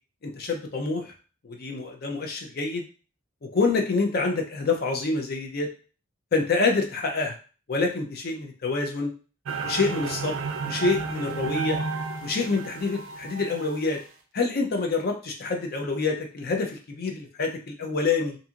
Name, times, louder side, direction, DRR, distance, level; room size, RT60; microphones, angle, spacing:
voice 1, 0.2-1.1 1.4-2.9 3.4-5.7 6.3-7.4 7.7-9.1 9.6-10.4 10.6-11.8 12.2-14.0 14.3-18.4, left 3 dB, 45° left, 2 dB, 0.4 m, -27 dB
sound 1, 9.5-14.0, right 4 dB, 65° right, 0.4 m, -32 dB
2.7 x 2.6 x 2.4 m, 0.36 s
head